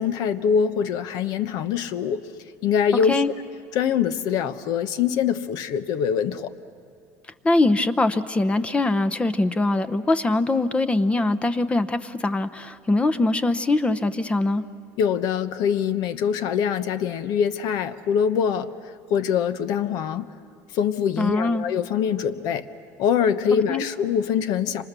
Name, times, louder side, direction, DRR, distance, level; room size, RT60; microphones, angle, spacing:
voice 1, 0.0-2.3 2.6-3.2 3.7-6.5 15.0-20.3 20.7-22.7 23.0-24.8, left 7 dB, 65° left, 11 dB, 1.1 m, -24 dB
voice 2, 7.4-14.6 21.2-21.6 23.7-23.8, left 2 dB, 15° left, 11 dB, 0.8 m, -22 dB
30.0 x 26.0 x 6.9 m, 2.4 s
supercardioid pair, 120°, 7 cm